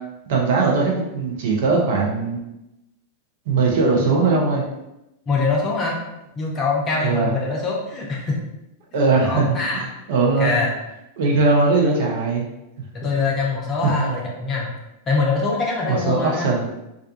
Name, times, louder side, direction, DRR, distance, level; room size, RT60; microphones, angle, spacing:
voice 1, 0.3-2.4 3.5-4.6 7.0-7.4 8.9-10.5 11.2-12.5 14.0-14.1 15.9-16.7, right 3 dB, 55° right, -2 dB, 0.6 m, -20 dB
voice 2, 5.3-6.0 6.4-8.4 8.9-9.8 10.4-10.7 12.9-14.7 15.1-16.5, left 3 dB, 30° left, -1 dB, 0.6 m, -23 dB
2.4 x 2.3 x 2.5 m, 0.91 s
figure-of-eight pair, 90°, 0 cm